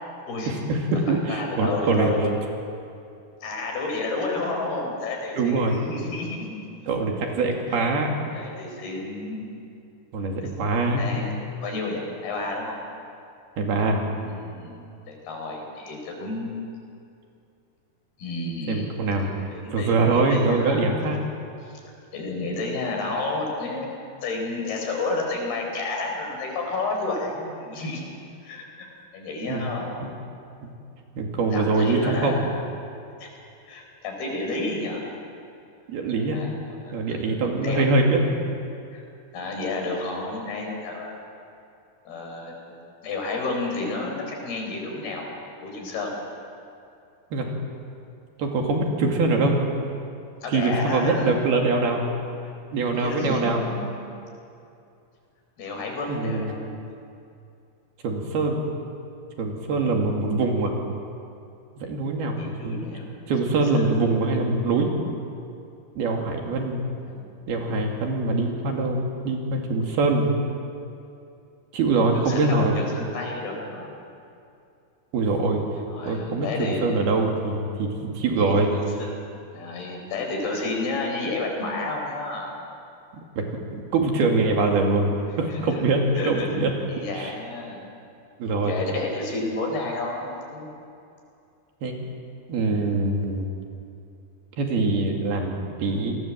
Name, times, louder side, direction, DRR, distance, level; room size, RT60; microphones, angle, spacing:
voice 1, 0.5-2.1 5.4-5.8 6.9-8.2 10.1-11.0 13.6-14.0 18.7-19.3 19.7-21.2 29.5-29.7 30.0-30.1 31.2-32.4 35.9-36.4 36.9-38.4 47.3-47.5 48.4-49.6 50.5-52.1 52.7-53.6 56.1-56.5 58.0-58.7 59.4-60.7 61.8-62.8 63.3-64.9 66.0-66.9 67.5-70.3 71.7-72.7 75.1-75.6 76.0-78.7 83.4-83.5 83.7-86.7 87.2-87.3 88.4-88.7 91.8-91.9 92.5-93.5 94.6-96.2, right 3 dB, 70° right, 1 dB, 4.4 m, -23 dB
voice 2, 1.1-2.3 3.4-6.5 8.3-9.5 10.6-11.3 11.6-12.8 14.0-16.6 18.2-18.9 19.2-20.9 21.6-21.8 22.1-23.9 24.2-28.1 28.4-28.9 29.1-29.9 31.5-32.5 33.2-33.3 33.7-35.0 36.1-37.3 37.6-37.9 38.9-39.0 39.3-41.2 42.1-45.3 45.6-46.1 50.4-51.3 52.9-53.9 55.6-56.7 62.4-63.3 63.8-64.0 67.1-67.3 72.1-73.9 75.9-76.8 78.4-82.5 85.4-85.8 86.2-86.5 86.9-87.9 88.5-90.7, left 3 dB, 70° left, 1 dB, 6.3 m, -31 dB
28.0 x 20.0 x 7.5 m, 2.5 s
omnidirectional pair, 4.7 m